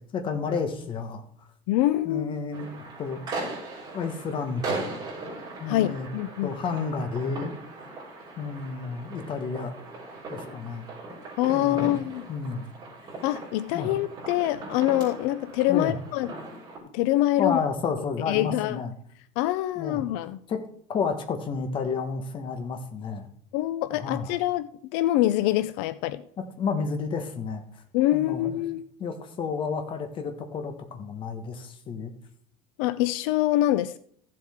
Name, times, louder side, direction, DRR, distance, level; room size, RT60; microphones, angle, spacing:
voice 1, 0.1-1.5 2.0-3.2 3.9-4.9 5.6-6.1 6.4-7.5 8.4-9.7 10.3-10.9 11.5-12.0 12.3-12.6 13.7-13.9 15.7-16.0 17.4-18.9 19.7-20.0 20.5-20.6 20.9-23.3 23.9-24.4 26.4-27.8 28.1-28.6 29.0-32.1, left 5 dB, 30° left, 1.3 m, -31 dB
voice 2, 1.7-2.3 5.7-6.5 11.4-12.3 13.2-16.3 16.9-17.6 18.3-18.8 19.4-20.4 23.5-26.2 27.9-28.8 32.8-34.0, left 14 dB, 80° left, 0.5 m, -25 dB
sound 1, 2.5-16.8, right 3 dB, 25° right, 4.8 m, -39 dB
15.0 x 7.6 x 3.6 m
cardioid pair, 160°, 16 cm